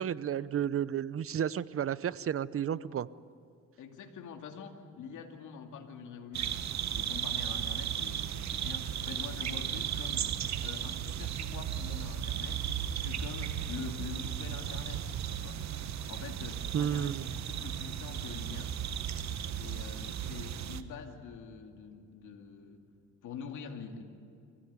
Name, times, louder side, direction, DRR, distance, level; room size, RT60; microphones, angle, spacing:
voice 1, 0.0-3.1 16.7-17.2, right 9 dB, 45° right, 18 dB, 0.7 m, -32 dB
voice 2, 3.8-6.7 6.9-10.3 10.6-12.7 13.0-15.1 15.4-15.7 16.1-18.8 19.6-22.8 23.2-24.0, left 6 dB, 80° left, 3 dB, 2.5 m, -45 dB
sound 1, 6.3-20.8, right 9 dB, 65° right, 1.2 m, -35 dB
24.0 x 16.0 x 9.6 m, 2.5 s
cardioid pair, 90°, 30 cm